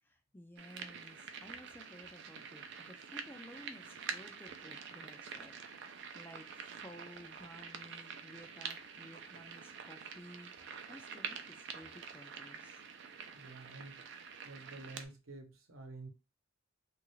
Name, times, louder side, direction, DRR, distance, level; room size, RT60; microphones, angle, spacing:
voice 1, 0.0-5.5 6.1-6.5 6.8-10.5 10.9-12.8, left 1 dB, 10° left, 0.3 m, -55 dB
sound 1, 0.6-15.1, right 6 dB, 60° right, 0.4 m, -47 dB
voice 2, 13.3-14.0 14.4-16.1, right 2 dB, 75° right, 0.9 m, -50 dB
3.1 x 2.4 x 3.1 m
head